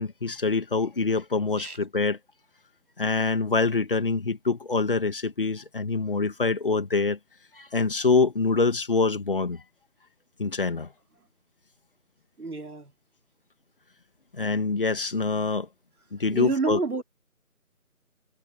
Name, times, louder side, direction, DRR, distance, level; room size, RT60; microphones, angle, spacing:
voice 1, 0.0-2.2 3.0-7.2 7.5-9.6 10.4-10.9 14.3-15.7 16.1-16.8, left 4 dB, 40° left, 2.2 m, -25 dB
voice 2, 12.4-12.9 16.3-17.0, right 4 dB, 80° right, 2.8 m, -29 dB
figure-of-eight pair, 170°, 44 cm